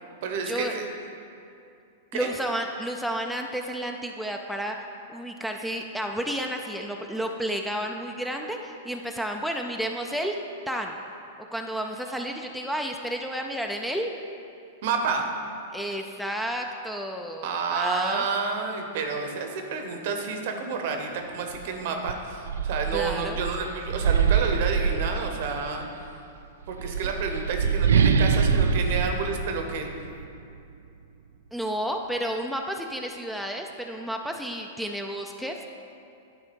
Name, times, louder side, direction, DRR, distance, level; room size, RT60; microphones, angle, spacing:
voice 1, 0.2-0.8 2.1-2.3 14.8-15.2 17.4-25.8 26.7-29.9, right 5 dB, 60° right, 4 dB, 0.9 m, -30 dB
voice 2, 2.1-4.8 5.1-10.4 10.7-11.0 11.5-14.1 15.7-18.2 22.9-23.4 27.0-27.1 31.5-35.6, equal, ahead, 2 dB, 0.4 m, -31 dB
sound 1, 21.5-21.7 22.1-25.7 26.6-30.3, right 6 dB, 85° right, 0.3 m, -24 dB
9.6 x 3.5 x 5.3 m, 2.5 s
hypercardioid pair, 120°, 0 cm